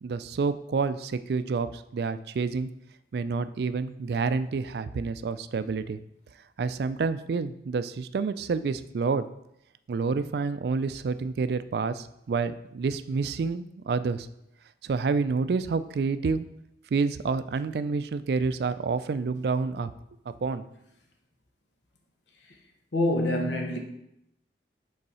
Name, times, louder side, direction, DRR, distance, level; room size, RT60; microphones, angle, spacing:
voice 1, 0.0-2.7 3.1-6.0 6.6-9.3 9.9-14.3 14.8-16.5 16.9-19.9 20.4-20.6, right 4 dB, 65° right, 0.3 m, -28 dB
voice 2, 22.9-23.8, left 1 dB, 85° left, 1.1 m, -25 dB
5.4 x 4.0 x 5.4 m
head